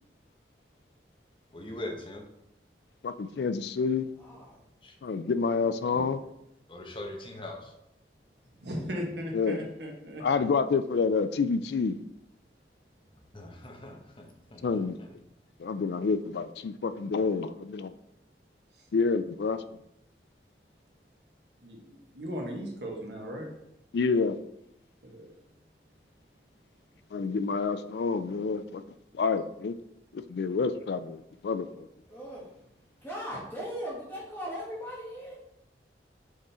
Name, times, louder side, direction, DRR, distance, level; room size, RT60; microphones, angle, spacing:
voice 1, 1.5-2.2 4.8-5.0 6.7-7.7 13.3-15.1, left 1 dB, 30° left, 2 dB, 0.8 m, -41 dB
voice 2, 3.0-4.1 5.0-6.2 9.3-9.6 10.2-12.0 14.6-15.0 15.6-17.9 18.9-19.6 23.9-24.4 27.1-28.8 29.1-29.7 30.1-31.9, left 4 dB, 70° left, 12 dB, 0.4 m, -28 dB
voice 3, 4.1-4.6 32.1-32.6 33.0-35.4, equal, 10° left, -6 dB, 1.9 m, -39 dB
voice 4, 8.6-10.5 21.6-23.5 25.0-25.3, equal, 80° right, -1 dB, 1.4 m, -37 dB
6.4 x 3.7 x 4.2 m, 0.82 s
head